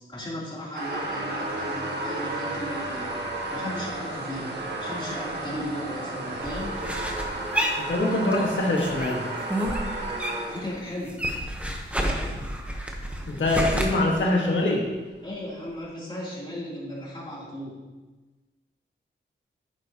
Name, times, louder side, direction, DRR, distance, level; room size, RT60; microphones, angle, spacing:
voice 1, 0.0-3.1 3.5-6.8 10.5-11.2 15.2-17.8, left 1 dB, 25° left, -6 dB, 3.1 m, -36 dB
sound 1, 0.7-10.9 11.5-11.6 13.3-13.4 13.7-13.8 14.2-14.3 14.9-15.0, right 2 dB, 60° right, 1.8 m, -33 dB
sound 2, 6.4-8.5 8.8-10.6 10.9-13.8, equal, 5° right, 1.0 m, -30 dB
voice 2, 7.8-9.2 13.3-14.8, left 2 dB, 80° left, -1 dB, 1.7 m, -24 dB
10.5 x 9.8 x 2.9 m, 1.2 s
wide cardioid pair, 150°, 20 cm